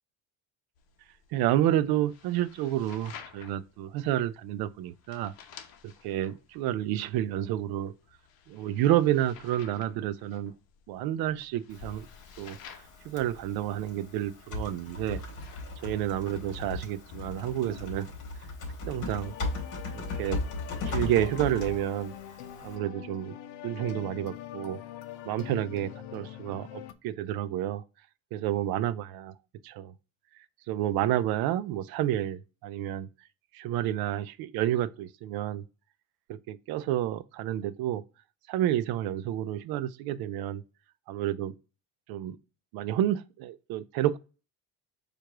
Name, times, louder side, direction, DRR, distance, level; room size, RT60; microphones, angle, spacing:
sound 1, 0.8-18.2, left 7 dB, 60° left, 0.9 m, -53 dB
voice 1, 1.3-5.3 6.0-7.9 8.5-10.5 10.9-12.1 12.4-12.6 13.0-15.2 15.8-18.1 18.9-19.4 19.9-20.4 20.8-22.1 22.6-23.3 23.6-24.8 25.2-27.8 28.3-29.3 29.6-29.9 30.7-33.1 33.5-35.6 36.3-38.0 38.5-40.6 41.1-41.6 42.1-42.4 42.7-44.2, right 12 dB, 65° right, 0.5 m, -30 dB
Typing, 11.7-22.8, left 3 dB, 45° left, 2.1 m, -38 dB
sound 2, 19.2-26.9, left 11 dB, 85° left, 0.7 m, -43 dB
4.7 x 2.5 x 4.5 m
cardioid pair, 160°, 41 cm